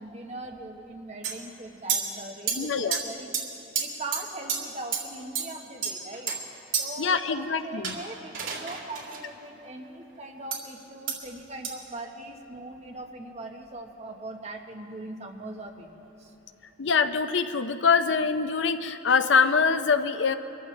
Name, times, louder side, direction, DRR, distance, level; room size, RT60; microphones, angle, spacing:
voice 1, 0.0-3.3 3.8-6.4 6.8-16.3, right 2 dB, 35° right, 2 dB, 1.2 m, -40 dB
sound 1, 1.2-1.3 1.9-2.0 2.5-2.6 2.9-3.0 3.3-3.4 3.8-3.9 4.1-4.2 4.5-4.6 4.9-5.0 5.3-5.4 5.8-6.4 6.7-6.8 7.8-9.2 10.5-10.6 11.1-11.2 11.6-11.7, right 6 dB, 85° right, 2.2 m, -29 dB
voice 2, 2.6-3.0 7.0-8.0 16.8-20.3, left 5 dB, 70° left, 10 dB, 0.6 m, -24 dB
23.5 x 14.0 x 3.2 m, 2.9 s
head